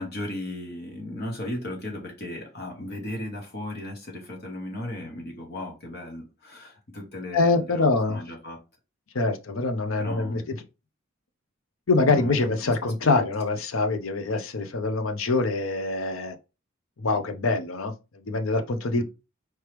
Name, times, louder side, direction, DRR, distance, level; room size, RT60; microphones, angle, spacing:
voice 1, 0.0-8.6 10.0-10.5 12.1-13.3 18.9-19.0, left 1 dB, 55° left, 1.2 m, -36 dB
voice 2, 7.3-8.2 9.1-10.4 11.9-16.4 17.0-17.9 18.2-19.0, left 3 dB, 80° left, 0.7 m, -24 dB
4.6 x 3.0 x 3.3 m
head